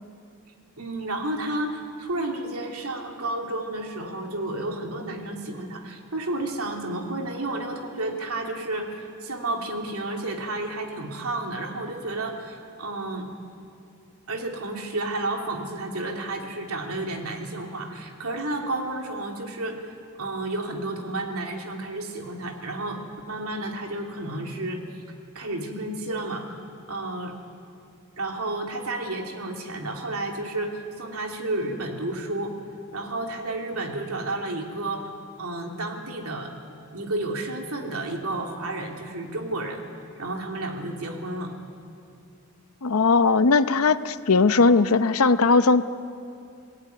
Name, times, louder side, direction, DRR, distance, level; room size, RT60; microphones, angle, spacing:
voice 1, 0.8-13.3 14.3-19.9 20.2-23.0 23.3-25.0 25.3-27.3 28.2-32.5 32.9-35.1 35.4-36.5 36.9-39.8 40.2-41.5, right 2 dB, 75° right, 2 dB, 3.0 m, -31 dB
voice 2, 42.8-45.9, left 4 dB, 75° left, 12 dB, 0.8 m, -19 dB
27.0 x 19.0 x 9.6 m, 2.6 s
head